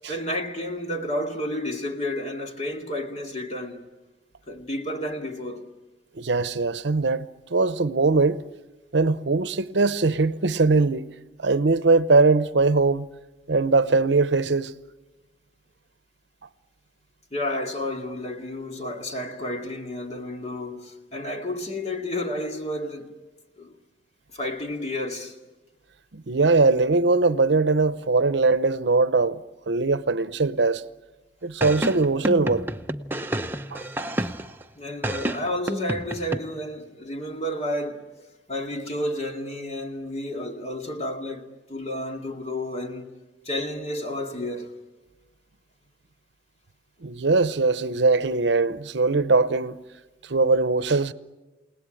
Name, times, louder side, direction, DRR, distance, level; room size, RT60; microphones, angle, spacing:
voice 1, 0.1-3.9 4.5-5.7 17.3-23.1 23.6-23.7 24.3-25.4 34.8-38.0 38.5-43.1 43.4-44.8, left 1 dB, 35° left, 2.2 m, -31 dB
voice 2, 6.2-8.4 8.9-11.1 11.4-13.1 13.5-14.7 26.1-29.4 29.7-30.8 31.4-32.7 33.7-33.8 47.0-49.8 50.3-51.1, right 3 dB, 70° right, 0.7 m, -21 dB
sound 1, 31.6-34.6 35.0-36.4, right 1 dB, 10° right, 0.7 m, -29 dB
29.5 x 18.5 x 9.0 m
head